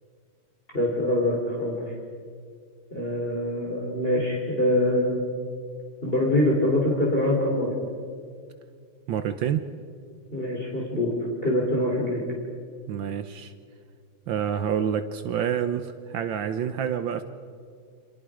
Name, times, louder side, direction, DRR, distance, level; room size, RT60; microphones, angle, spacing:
voice 1, 0.7-1.9 2.9-5.2 6.0-7.7 10.3-11.1 11.4-12.2, left 1 dB, 25° left, -3 dB, 3.8 m, -24 dB
voice 2, 9.1-9.7 12.9-13.5 14.3-17.2, right 8 dB, 75° right, 9 dB, 1.6 m, -28 dB
29.5 x 26.5 x 5.0 m, 2.2 s
omnidirectional pair, 2.2 m